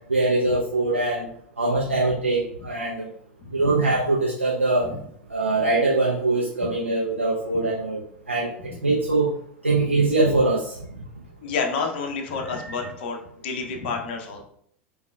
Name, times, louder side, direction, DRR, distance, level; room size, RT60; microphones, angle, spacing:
voice 1, 0.1-1.3 1.6-2.9 3.5-4.9 5.3-8.0 8.3-9.3 9.6-10.7, right 2 dB, 85° right, -4 dB, 0.5 m, -22 dB
voice 2, 11.4-14.4, left 4 dB, 55° left, 3 dB, 0.6 m, -29 dB
4.9 x 2.4 x 2.3 m, 0.65 s
figure-of-eight pair, 80°, 7 cm